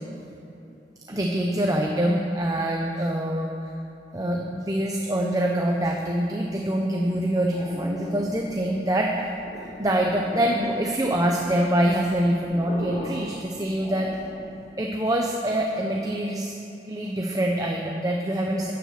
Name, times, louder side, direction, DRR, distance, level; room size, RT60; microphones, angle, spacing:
voice 1, 1.1-3.5 4.1-9.3 9.6-14.1 14.8-16.5 16.9-18.7, right 1 dB, 20° right, 0 dB, 0.8 m, -25 dB
sound 1, 6.8-14.6, equal, 20° left, 3.4 m, -39 dB
10.5 x 9.4 x 6.8 m, 2.9 s
head